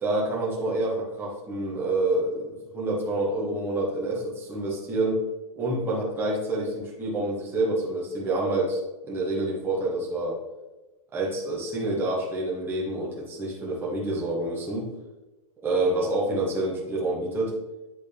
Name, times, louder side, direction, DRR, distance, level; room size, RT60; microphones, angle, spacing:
voice 1, 0.0-2.5 2.7-5.2 5.6-8.8 9.0-10.4 11.1-14.9 15.6-17.6, right 2 dB, 10° right, -5 dB, 1.3 m, -27 dB
8.7 x 3.9 x 3.4 m, 1.1 s
supercardioid pair, 165°, 20 cm